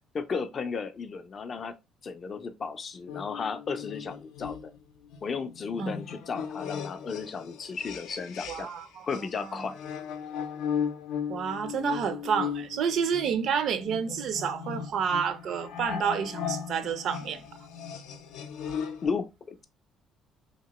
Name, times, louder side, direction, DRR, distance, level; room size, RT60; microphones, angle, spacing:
voice 1, 0.1-1.7 2.0-4.7 5.2-8.7 9.0-9.8 13.3-13.4 19.0-19.6, left 5 dB, 30° left, 0.3 m, -34 dB
sound 1, 3.1-8.8 9.1-19.1, left 7 dB, 85° left, 0.5 m, -37 dB
voice 2, 8.5-9.1 11.3-17.4, right 7 dB, 55° right, 0.4 m, -29 dB
2.9 x 2.9 x 2.8 m
cardioid pair, 170°, 0 cm